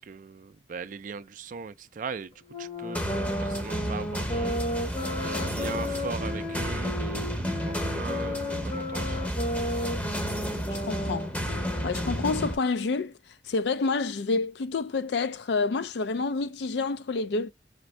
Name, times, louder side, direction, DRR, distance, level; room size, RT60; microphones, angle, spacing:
voice 1, 0.0-2.3 2.6-3.0 3.4-4.6 5.2-9.2, right 5 dB, 45° right, 0.4 m, -39 dB
sound 1, 2.5-12.5, left 1 dB, 35° left, 0.9 m, -34 dB
sound 2, 2.9-12.5, equal, 10° left, 0.7 m, -32 dB
voice 2, 10.7-11.3 11.8-13.1 13.5-17.5, left 4 dB, 65° left, 0.4 m, -28 dB
5.1 x 2.6 x 3.2 m
head